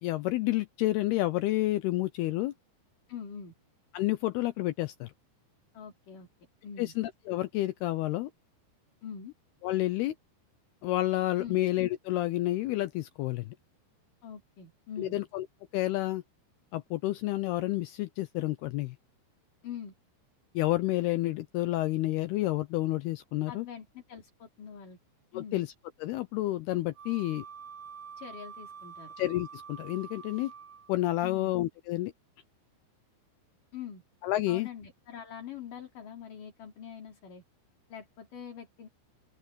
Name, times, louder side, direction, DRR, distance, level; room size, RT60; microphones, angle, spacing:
voice 1, 0.0-2.5 3.9-5.1 6.8-8.3 9.6-10.2 10.8-13.6 15.0-15.5 15.7-16.2 16.7-19.0 20.6-23.7 25.3-25.7 26.0-27.4 29.2-30.5 30.9-32.1 34.2-34.7, left 16 dB, 85° left, 2.3 m, -30 dB
voice 2, 3.1-3.5 5.7-6.3 6.6-6.9 9.0-9.3 11.4-11.6 14.2-15.2 19.6-19.9 23.5-25.0 25.3-25.6 28.2-29.1 31.2-31.5 33.7-34.0 34.5-37.4 37.9-38.9, left 7 dB, 45° left, 4.9 m, -44 dB
Wind instrument woodwind instrument, 26.9-31.0, right 6 dB, 50° right, 3.3 m, -47 dB
open air
omnidirectional pair, 5.3 m